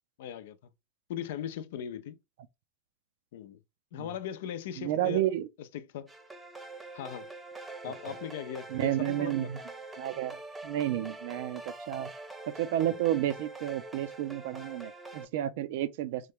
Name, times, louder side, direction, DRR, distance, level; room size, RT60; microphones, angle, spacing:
voice 1, 0.2-0.7 1.1-2.2 3.3-3.6 3.9-5.2 5.6-6.1 6.9-7.3 7.8-9.5, left 10 dB, 75° left, 0.5 m, -39 dB
voice 2, 4.8-5.5 8.7-9.6 10.0-11.6 11.9-12.1 12.6-16.3, right 13 dB, 70° right, 0.4 m, -31 dB
sound 1, 6.1-15.3, right 2 dB, 15° right, 0.7 m, -44 dB
3.1 x 2.2 x 3.6 m
supercardioid pair, 115°, 0 cm